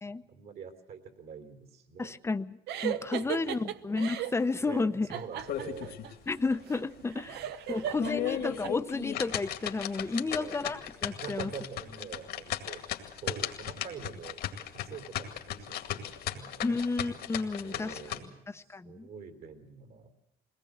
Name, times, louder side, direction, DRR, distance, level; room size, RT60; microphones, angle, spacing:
voice 1, 0.3-2.2 2.9-3.7 4.6-5.9 7.3-8.6 10.2-10.6 11.1-12.8 13.2-14.4 14.7-16.6 17.6-20.1, right 6 dB, 65° right, 7 dB, 3.3 m, -46 dB
voice 2, 2.0-2.6 2.8-5.1 6.3-7.4 7.7-11.5 16.6-18.0 18.5-19.1, left 3 dB, 15° left, 11 dB, 0.8 m, -32 dB
sound 1, 2.7-4.4 5.1-8.7, right 11 dB, 80° right, 0.9 m, -37 dB
sound 2, 5.4-6.1 6.5-6.6 7.1-7.2 7.8-18.2, left 11 dB, 70° left, 2.2 m, -36 dB
22.0 x 18.5 x 7.9 m, 0.89 s
cardioid pair, 110°, 17 cm